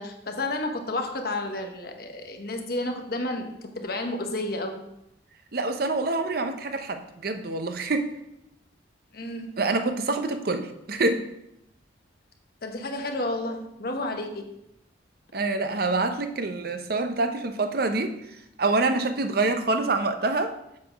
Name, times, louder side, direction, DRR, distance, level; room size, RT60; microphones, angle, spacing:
voice 1, 0.0-4.9 9.1-9.6 12.6-14.5, left 2 dB, 50° left, 4 dB, 1.0 m, -31 dB
voice 2, 5.5-8.1 9.6-11.2 15.3-18.1 18.6-20.5, right 3 dB, 50° right, 7 dB, 0.7 m, -26 dB
7.4 x 4.2 x 6.1 m, 0.83 s
head